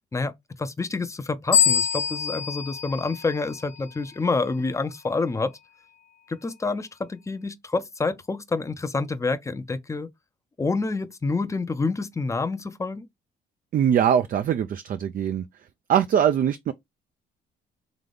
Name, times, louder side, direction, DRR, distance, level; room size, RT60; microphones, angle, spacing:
voice 1, 0.6-5.5 6.3-10.1 10.6-13.1, left 3 dB, 15° left, 0.5 m, -28 dB
sound 1, 1.5-4.0, left 8 dB, 70° left, 1.0 m, -25 dB
voice 2, 13.7-15.5 15.9-16.7, right 9 dB, 45° right, 0.4 m, -22 dB
3.8 x 3.3 x 3.4 m
cardioid pair, 90°, 20 cm